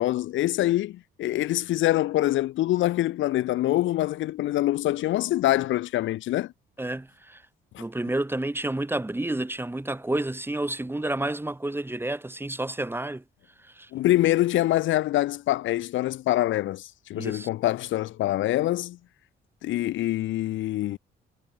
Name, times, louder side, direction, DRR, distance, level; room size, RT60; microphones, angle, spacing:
voice 1, 0.0-6.5 7.7-7.8 13.9-19.0 19.6-21.0, left 15 dB, 75° left, 0.6 m, -25 dB
voice 2, 6.8-7.4 7.8-13.2 13.6-13.9 17.2-17.5, right 1 dB, 10° right, 4.0 m, -30 dB
cardioid pair, 90°, 20 cm